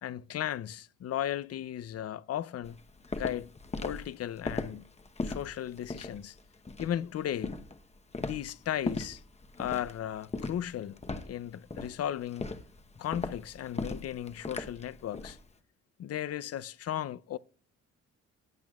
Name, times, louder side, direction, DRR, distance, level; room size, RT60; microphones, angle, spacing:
voice 1, 0.0-2.8 3.1-3.5 3.8-4.9 5.2-6.4 6.8-7.6 8.2-9.2 9.6-11.0 11.3-12.5 13.0-15.4 16.0-17.4, left 11 dB, 55° left, 0.6 m, -36 dB
Walk footsteps, 2.6-15.4, left 3 dB, 20° left, 1.0 m, -38 dB
17.0 x 8.5 x 2.4 m
cardioid pair, 90°, 30 cm